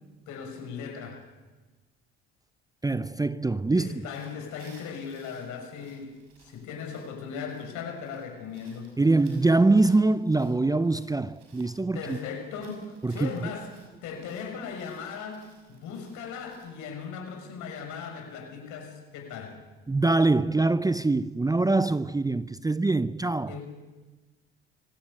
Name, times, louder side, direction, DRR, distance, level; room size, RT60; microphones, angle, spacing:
voice 1, 0.3-1.2 3.7-9.0 11.9-13.7 14.0-19.6 23.5-23.6, left 6 dB, 70° left, 6.3 m, -38 dB
voice 2, 2.8-4.0 9.0-12.2 13.0-13.5 19.9-23.6, right 2 dB, 10° right, 0.7 m, -24 dB
sound 1, 4.1-16.7, right 5 dB, 85° right, 5.8 m, -60 dB
25.5 x 17.0 x 8.6 m
hypercardioid pair, 65°, 31 cm